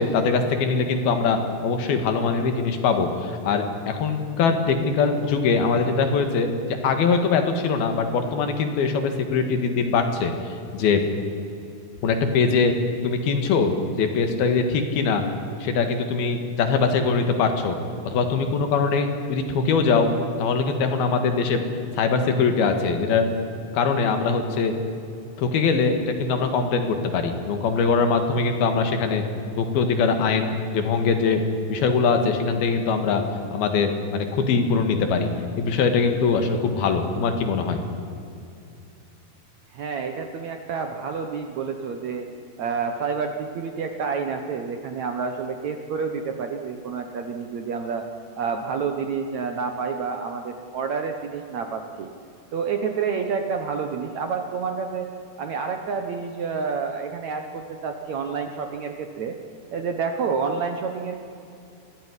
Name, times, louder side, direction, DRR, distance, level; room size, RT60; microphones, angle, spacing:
voice 1, 0.0-6.5 6.8-10.3 10.7-11.0 12.0-12.7 13.0-15.2 15.6-17.8 18.0-20.1 20.4-21.6 21.9-23.3 23.7-24.7 25.4-29.2 29.5-31.4 31.7-33.2 33.5-35.3 35.6-37.8, left 5 dB, 70° left, 6 dB, 3.7 m, -22 dB
voice 2, 39.7-42.3 42.6-48.1 48.4-52.1 52.5-55.1 55.4-59.4 59.7-61.2, right 5 dB, 65° right, 5 dB, 2.0 m, -29 dB
24.0 x 16.5 x 9.9 m, 2.6 s
omnidirectional pair, 4.6 m